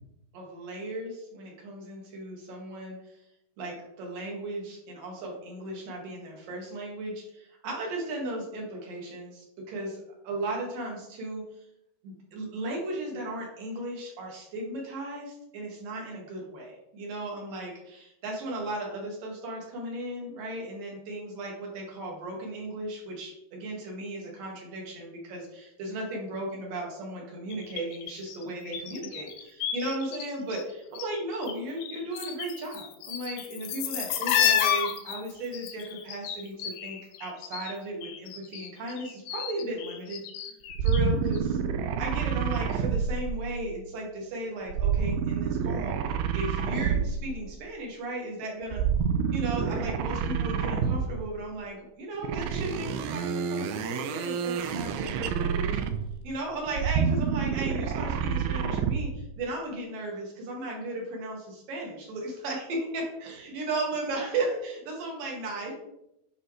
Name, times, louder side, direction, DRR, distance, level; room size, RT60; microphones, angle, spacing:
voice 1, 0.3-3.0 3.6-11.4 12.0-40.2 40.8-41.6 42.0-46.0 46.3-48.9 49.3-55.8 56.2-65.7, right 1 dB, 60° right, -1 dB, 3.3 m, -36 dB
sound 1, 27.5-30.2 30.5-31.5 31.8-37.7 38.0-41.0 41.3-41.4, left 9 dB, 85° left, 2.9 m, -31 dB
sound 2, 40.7-43.8 44.7-47.4 48.7-51.3 52.2-56.2 56.7-59.2, right 6 dB, 85° right, 2.6 m, -28 dB
11.5 x 5.6 x 3.2 m, 0.83 s
omnidirectional pair, 4.6 m